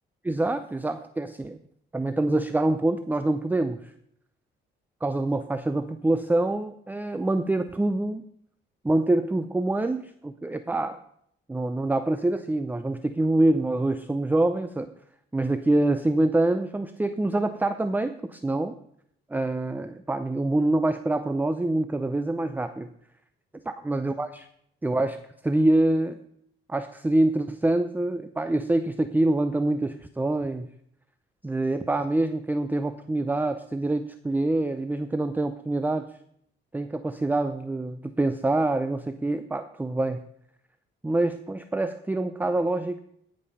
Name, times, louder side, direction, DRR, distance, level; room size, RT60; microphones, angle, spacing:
voice 1, 0.2-1.6 1.9-3.8 5.0-8.2 8.8-11.0 11.5-14.9 15.3-18.7 19.3-22.9 23.7-24.5 24.8-25.2 25.4-26.2 26.7-30.7 31.4-36.1 36.7-40.2 41.0-43.0, right 2 dB, 10° right, 10 dB, 0.5 m, -25 dB
15.0 x 5.3 x 5.7 m, 0.70 s
cardioid pair, 90°, 20 cm